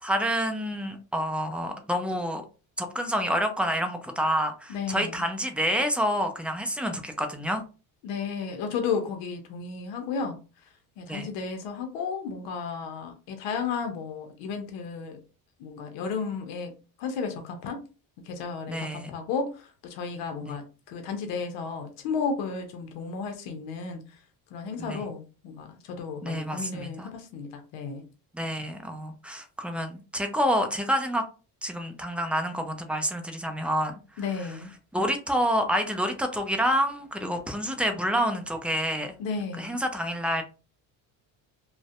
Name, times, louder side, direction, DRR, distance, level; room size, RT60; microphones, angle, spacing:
voice 1, 0.0-2.4 2.8-7.6 11.1-11.3 18.7-19.1 20.4-20.6 24.8-25.0 26.2-27.1 28.3-31.2 31.6-34.6 34.9-39.2 39.6-40.4, equal, 5° right, 5 dB, 0.4 m, -28 dB
voice 2, 4.7-5.2 8.0-10.4 11.0-15.2 15.6-17.8 18.3-24.0 24.5-28.0 34.2-34.7 39.2-39.8, left 5 dB, 85° left, 5 dB, 0.7 m, -33 dB
2.5 x 2.1 x 2.4 m, 0.33 s
supercardioid pair, 85°, 43 cm